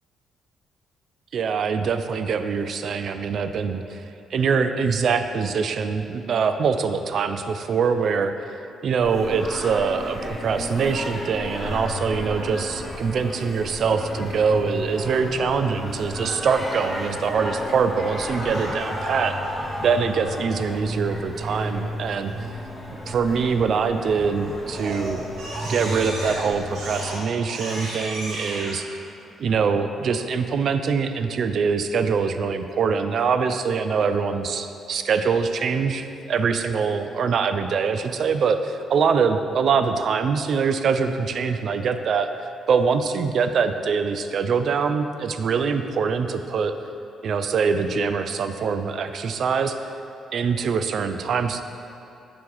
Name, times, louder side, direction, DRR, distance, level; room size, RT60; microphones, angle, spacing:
voice 1, 1.3-4.0 4.3-8.3 8.8-19.4 19.8-22.3 23.1-25.2 25.7-29.0 29.4-46.7 47.2-49.8 50.3-51.6, right 5 dB, 60° right, 9 dB, 0.3 m, -23 dB
Singing, 9.0-27.2, left 1 dB, 10° left, 1.0 m, -33 dB
Crying sobbing, 18.3-19.3 24.0-24.3 24.7-28.8, right 1 dB, 80° right, 1.3 m, -35 dB
7.8 x 3.4 x 4.7 m, 2.8 s
cardioid pair, 90°, 0 cm